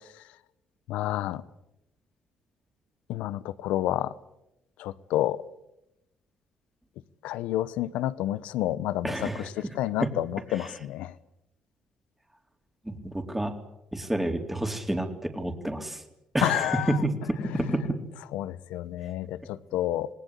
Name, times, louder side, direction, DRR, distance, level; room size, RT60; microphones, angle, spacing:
voice 1, 0.9-1.4 3.1-4.1 4.8-5.4 7.2-11.1 16.4-17.0 17.4-17.6 18.3-20.1, left 13 dB, 85° left, 0.9 m, -29 dB
voice 2, 9.0-9.7 10.0-10.1 10.5-10.7 12.9-13.5 13.9-16.0 16.3-18.0, right 1 dB, 10° right, 3.9 m, -29 dB
27.0 x 19.0 x 8.3 m
supercardioid pair, 65°, 2 cm